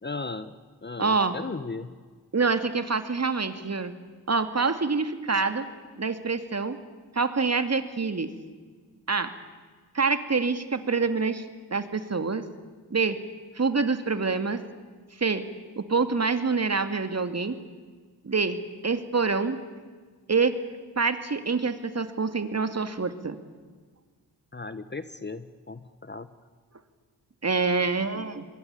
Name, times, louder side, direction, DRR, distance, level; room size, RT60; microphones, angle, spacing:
voice 1, 0.0-0.5 0.8-1.9 24.5-26.3, left 3 dB, 20° left, 13 dB, 1.3 m, -36 dB
voice 2, 1.0-1.3 2.3-3.9 4.3-5.7 6.0-6.8 7.1-8.3 9.1-9.3 9.9-11.5 11.7-12.5 12.9-13.2 13.5-14.6 15.2-15.4 15.8-17.6 18.2-18.6 18.8-19.6 20.3-20.5 21.0-23.4 27.4-28.5, right 4 dB, 35° right, 9 dB, 2.6 m, -26 dB
26.0 x 22.5 x 8.6 m, 1.5 s
hypercardioid pair, 45°, 47 cm